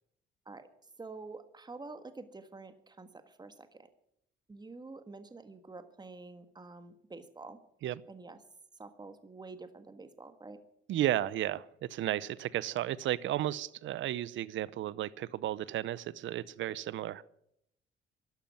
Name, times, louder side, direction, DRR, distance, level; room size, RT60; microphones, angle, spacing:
voice 1, 1.0-3.9 4.5-7.6 8.1-8.4 8.7-10.6, right 3 dB, 20° right, 10 dB, 1.6 m, -48 dB
voice 2, 10.9-17.2, right 13 dB, 75° right, 20 dB, 0.7 m, -33 dB
13.0 x 11.5 x 9.4 m, 0.77 s
cardioid pair, 90°, 20 cm